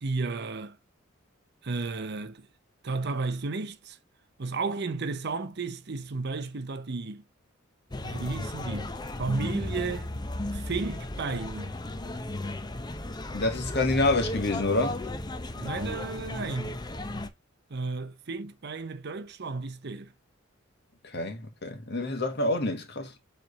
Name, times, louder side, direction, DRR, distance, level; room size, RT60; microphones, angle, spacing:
voice 1, 0.0-0.8 1.6-2.5 2.8-4.0 4.4-7.2 8.0-8.9 9.2-10.2 10.5-11.7 15.5-16.8 17.7-20.1, right 3 dB, 55° right, 0.7 m, -33 dB
sound 1, 7.9-17.3, left 2 dB, 20° left, 0.6 m, -35 dB
voice 2, 13.3-15.0 21.0-23.1, left 2 dB, 55° left, 1.6 m, -27 dB
7.5 x 3.4 x 4.0 m
head